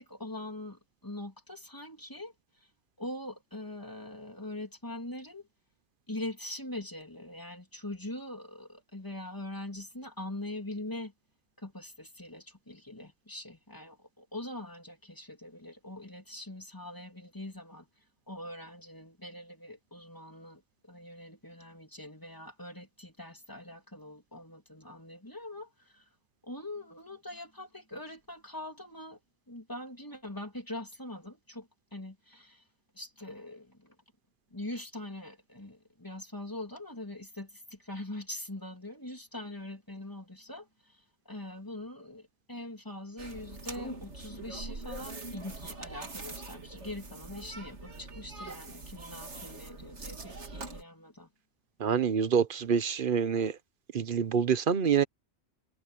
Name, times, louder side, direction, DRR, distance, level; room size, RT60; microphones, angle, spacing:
voice 1, 0.0-2.7 3.0-5.5 6.1-11.1 11.6-17.9 18.3-26.1 26.4-29.2 29.5-32.6 32.9-33.9 34.5-51.3, left 1 dB, 20° left, 3.1 m, -43 dB
sound 1, 43.2-50.8, right 2 dB, 90° right, 2.8 m, -43 dB
voice 2, 51.8-53.5 53.9-55.0, right 7 dB, 55° right, 1.0 m, -26 dB
omnidirectional pair, 1.1 m